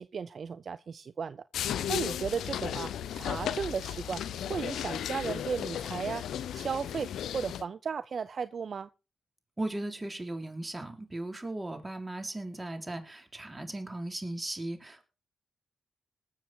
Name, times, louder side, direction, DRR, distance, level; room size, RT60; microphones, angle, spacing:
voice 1, 0.0-6.2 6.5-8.9, right 6 dB, 60° right, 0.5 m, -35 dB
sound 1, 1.5-7.6, left 10 dB, 80° left, 0.6 m, -35 dB
voice 2, 9.6-15.0, right 2 dB, 25° right, 3.6 m, -37 dB
20.0 x 7.3 x 4.3 m
supercardioid pair, 45°, 0 cm